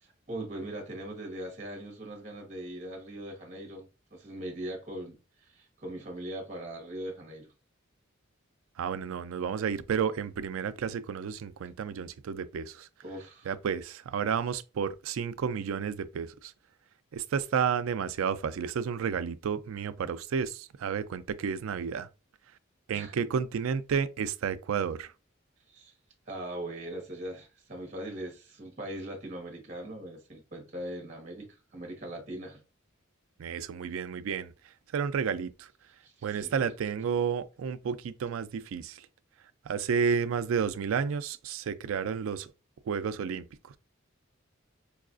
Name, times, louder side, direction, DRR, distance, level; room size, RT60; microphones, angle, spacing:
voice 1, 0.0-7.5 13.0-13.5 22.9-23.2 25.7-25.9 26.3-32.6 36.0-36.7, right 1 dB, 35° right, 1.0 m, -40 dB
voice 2, 8.8-12.9 13.5-16.5 17.1-22.1 22.9-25.1 33.4-34.5 34.9-35.7 36.2-39.1 39.7-42.5 42.9-43.8, right 6 dB, 80° right, 0.3 m, -31 dB
4.6 x 2.4 x 2.4 m
head